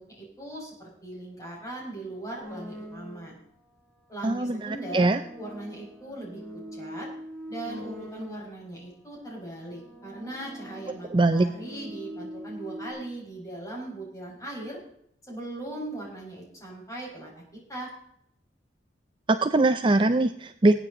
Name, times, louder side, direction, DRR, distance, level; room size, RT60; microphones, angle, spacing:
voice 1, 0.0-3.4 4.1-5.1 5.4-6.4 6.7-7.1 7.5-14.8 15.3-17.9, right 1 dB, 20° left, -3 dB, 5.1 m, -39 dB
sound 1, 2.4-3.5 4.3-8.8 9.5-12.9, equal, ahead, 6.1 m, -43 dB
voice 2, 4.2-5.2 11.1-11.5 19.3-20.7, right 2 dB, 25° right, 9 dB, 0.5 m, -22 dB
20.0 x 9.2 x 3.9 m, 0.72 s
head